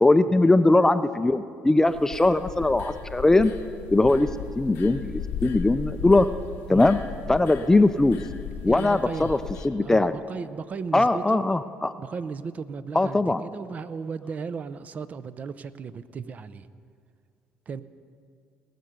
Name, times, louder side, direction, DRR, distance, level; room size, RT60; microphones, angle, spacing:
voice 1, 0.0-3.5 3.9-4.3 4.6-6.3 6.7-7.0 7.3-8.2 8.6-9.4 9.6-10.1 10.9-11.9 12.9-13.4, left 2 dB, 15° left, 11 dB, 0.4 m, -20 dB
sound 1, 1.9-9.7, left 7 dB, 75° left, 0.9 m, -37 dB
voice 2, 8.7-9.4 9.8-11.5 12.0-16.7 17.7-17.8, right 5 dB, 40° right, 14 dB, 0.6 m, -35 dB
19.5 x 6.8 x 6.6 m, 2.3 s
supercardioid pair, 70°, 4 cm